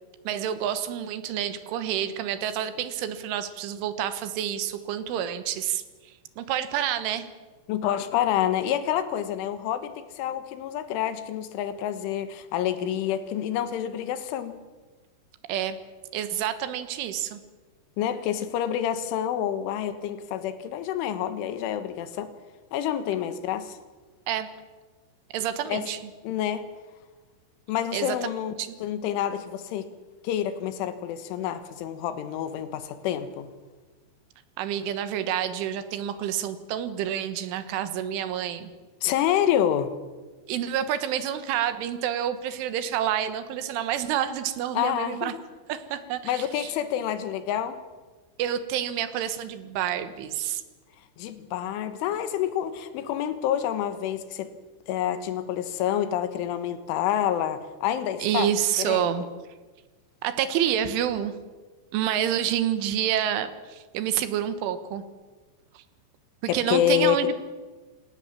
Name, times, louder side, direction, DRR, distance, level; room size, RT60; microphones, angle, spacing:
voice 1, 0.3-5.8 6.4-7.3 15.5-15.8 16.1-17.4 24.3-24.5 25.3-26.0 27.9-28.3 28.6-28.7 34.6-38.7 40.5-45.3 45.7-46.7 48.4-50.6 58.2-59.3 60.2-61.3 61.9-65.0 65.8-65.9 66.5-67.4, right 10 dB, 80° right, 11 dB, 3.7 m, -28 dB
voice 2, 7.7-14.5 18.0-22.3 22.7-23.8 25.7-25.9 26.2-26.6 27.7-28.5 28.8-29.9 30.2-33.5 39.0-39.9 44.8-45.4 46.3-47.8 51.2-54.5 54.9-58.5 58.8-59.3 66.5-67.2, left 10 dB, 80° left, 11 dB, 3.8 m, -28 dB
28.0 x 16.5 x 7.4 m, 1.3 s
omnidirectional pair, 5.6 m